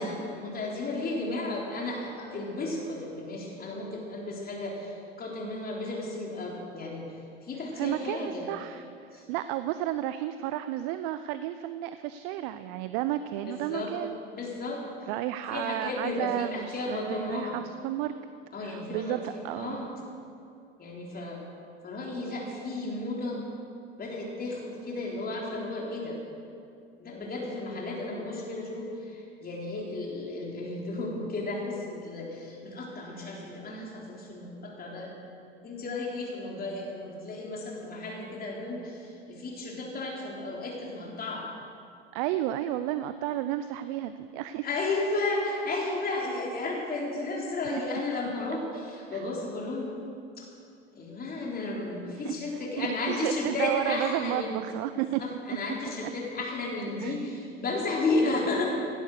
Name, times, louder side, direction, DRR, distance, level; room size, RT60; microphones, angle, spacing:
voice 1, 0.0-7.1 7.4-8.5 9.1-9.2 13.4-13.9 14.3-15.1 15.5-17.6 18.5-19.9 20.8-21.4 21.8-23.4 24.0-26.2 27.0-35.2 35.6-41.5 44.6-49.9 50.4-50.5 50.9-54.6 55.2-58.6, left 2 dB, 30° left, -2 dB, 3.7 m, -33 dB
voice 2, 7.8-14.2 15.1-18.1 18.6-19.9 42.1-44.7 47.7-47.8 49.1-49.2 52.2-55.2 57.0-57.2, right 13 dB, 55° right, 12 dB, 0.7 m, -32 dB
17.0 x 11.5 x 6.5 m, 2.5 s
hypercardioid pair, 80°, 31 cm